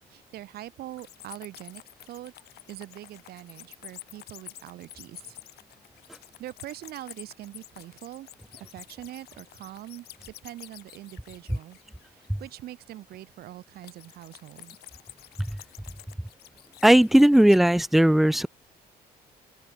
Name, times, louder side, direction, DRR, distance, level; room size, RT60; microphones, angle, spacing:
voice 1, 0.1-2.3 2.7-5.4 6.4-8.3 8.7-11.8 12.0-14.8, right 14 dB, 70° right, 1.4 m, -43 dB
sound 1, 0.9-12.3 13.8-17.8, left 15 dB, 70° left, 1.1 m, -49 dB
voice 2, 16.8-18.5, right 1 dB, ahead, 0.3 m, -18 dB
open air
cardioid pair, 110°, 17 cm